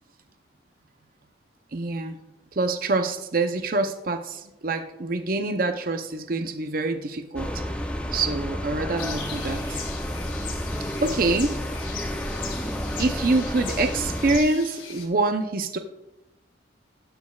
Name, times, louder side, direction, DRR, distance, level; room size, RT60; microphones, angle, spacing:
voice 1, 1.7-2.2 2.5-7.6 8.1-9.8 11.0-11.6 13.0-15.8, right 3 dB, 50° right, 7 dB, 0.6 m, -25 dB
sound 1, 7.4-14.4, equal, 5° left, 0.6 m, -31 dB
sound 2, 9.0-15.1, left 6 dB, 85° left, 1.8 m, -39 dB
18.5 x 6.4 x 2.3 m, 0.91 s
head